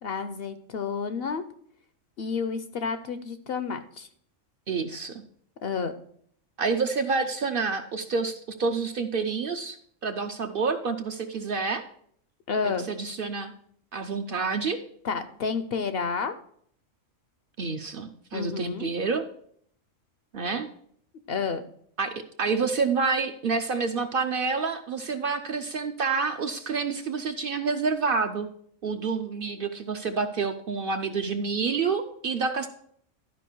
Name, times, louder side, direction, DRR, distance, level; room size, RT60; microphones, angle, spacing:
voice 1, 0.0-1.4 2.2-4.1 5.6-5.9 12.5-12.9 15.0-16.4 18.3-18.9 21.3-21.6, left 5 dB, 60° left, 10 dB, 0.7 m, -30 dB
voice 2, 4.7-5.2 6.6-9.8 10.0-11.8 12.6-13.5 13.9-14.8 17.6-19.3 20.3-20.7 22.0-28.5 28.8-32.7, right 4 dB, 55° right, 7 dB, 0.7 m, -28 dB
12.0 x 4.9 x 4.5 m, 0.64 s
omnidirectional pair, 1.3 m